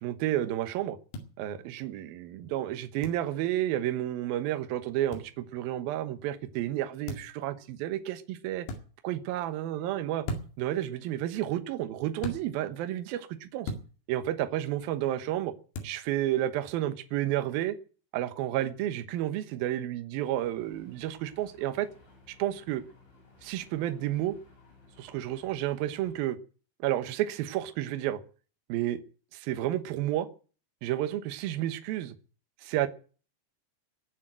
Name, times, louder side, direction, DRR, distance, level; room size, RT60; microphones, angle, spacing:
voice 1, 0.0-1.0 1.4-8.7 9.0-10.3 10.6-13.7 14.1-15.5 15.8-17.8 18.1-21.9 22.4-22.8 23.4-24.4 25.0-26.4 26.8-28.2 28.7-29.0 29.3-30.3 30.8-32.2 32.6-32.9, right 13 dB, 70° right, 10 dB, 2.6 m, -31 dB
sound 1, 1.1-1.3 3.0-3.2 5.1-5.3 7.1-7.4 8.6-8.8 10.2-10.7 12.2-12.4 13.6-13.9 15.7-16.0, left 1 dB, 75° left, 4.2 m, -36 dB
sound 2, 20.4-26.2, left 3 dB, 90° left, 9.7 m, -58 dB
18.5 x 7.2 x 9.0 m, 0.40 s
omnidirectional pair, 5.1 m